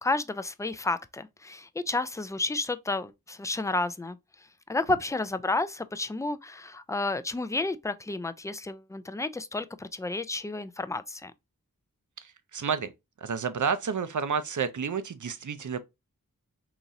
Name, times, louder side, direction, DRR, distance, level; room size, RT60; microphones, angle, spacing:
voice 1, 0.0-4.2 4.7-11.3, left 2 dB, 10° left, 0.3 m, -31 dB
voice 2, 12.2-12.9 13.2-15.8, right 6 dB, 55° right, 0.6 m, -30 dB
3.8 x 3.0 x 2.6 m
wide cardioid pair, 50°, 35 cm